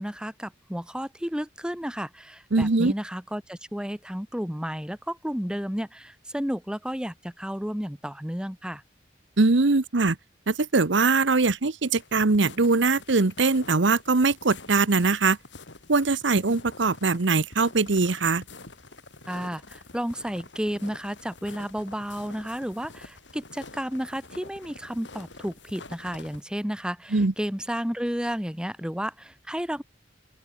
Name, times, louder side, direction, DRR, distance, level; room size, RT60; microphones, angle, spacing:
voice 1, 0.0-8.8 19.3-29.8, equal, 5° right, 1.5 m, -32 dB
voice 2, 2.5-2.9 9.4-10.2 10.5-15.4 15.9-18.4 27.1-27.3, right 3 dB, 75° right, 1.0 m, -22 dB
sound 1, 11.9-26.4, left 3 dB, 70° left, 5.4 m, -47 dB
open air
head